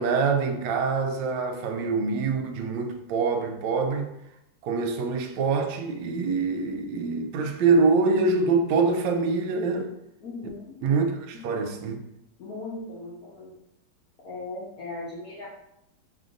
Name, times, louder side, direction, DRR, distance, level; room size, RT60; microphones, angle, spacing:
voice 1, 0.0-4.1 4.6-9.9 10.8-12.0, right 4 dB, 75° right, 1.1 m, -25 dB
voice 2, 10.2-10.8 11.3-11.6 12.4-13.5 14.2-15.5, left 2 dB, 60° left, 1.1 m, -38 dB
3.4 x 2.5 x 3.9 m
omnidirectional pair, 2.3 m